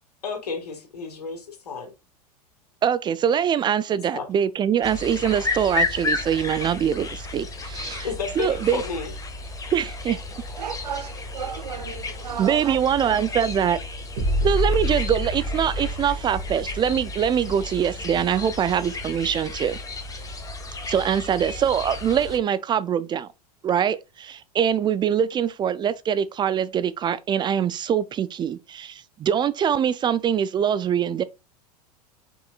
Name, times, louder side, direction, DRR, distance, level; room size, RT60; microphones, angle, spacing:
voice 1, 0.2-1.4 1.7-1.9 3.9-4.3 8.0-9.1, left 5 dB, 80° left, 1.8 m, -31 dB
voice 2, 2.8-8.1 8.4-8.8 9.7-10.2 12.4-13.8 14.4-19.8 20.9-23.3 23.6-31.2, right 8 dB, 25° right, 0.4 m, -23 dB
sound 1, 4.8-22.4, left 3 dB, 15° left, 1.2 m, -33 dB
voice 3, 10.5-12.8 14.3-14.4, right 8 dB, 85° right, 0.5 m, -34 dB
sound 2, 14.2-18.2, equal, 65° right, 2.6 m, -28 dB
6.0 x 3.7 x 2.4 m
hypercardioid pair, 95°, 20 cm